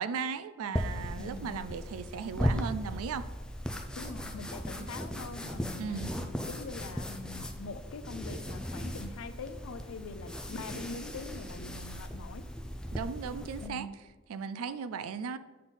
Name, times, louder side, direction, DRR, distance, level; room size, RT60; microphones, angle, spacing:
voice 1, 0.0-3.3 5.8-6.1 12.9-13.9 14.3-15.4, right 6 dB, 90° right, 0.4 m, -36 dB
sound 1, 0.7-13.7, equal, 5° left, 0.4 m, -37 dB
voice 2, 1.2-1.6 4.0-12.4 13.6-13.9, left 3 dB, 80° left, 0.5 m, -43 dB
7.4 x 3.9 x 4.0 m
head